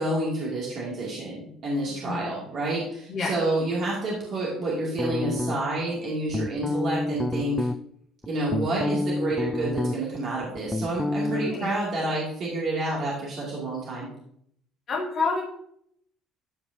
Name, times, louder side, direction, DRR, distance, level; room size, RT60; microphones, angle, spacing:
voice 1, 0.0-7.7 8.3-14.1, right 2 dB, 55° right, -5 dB, 2.7 m, -29 dB
voice 2, 2.0-2.4 3.1-3.3 6.6-6.7 11.3-11.7 14.9-15.4, left 4 dB, 50° left, -3 dB, 1.8 m, -29 dB
sound 1, 5.0-5.8 6.3-7.8 8.2-10.2 10.4-11.5, left 2 dB, 15° left, 0.4 m, -28 dB
13.5 x 5.1 x 2.8 m, 0.70 s
hypercardioid pair, 55°, 0 cm